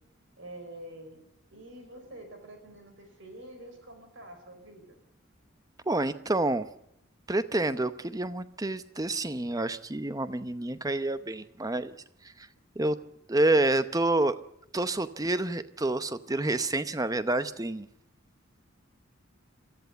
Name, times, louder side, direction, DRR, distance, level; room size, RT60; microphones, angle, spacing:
voice 1, 0.4-1.2 1.5-5.0, right 1 dB, 65° right, 6 dB, 5.0 m, -47 dB
voice 2, 5.9-6.7 7.3-12.0 12.4-12.5 12.8-13.0 13.3-14.4 14.7-17.9, right 2 dB, 15° right, 13 dB, 0.7 m, -28 dB
23.5 x 14.0 x 8.1 m, 0.76 s
head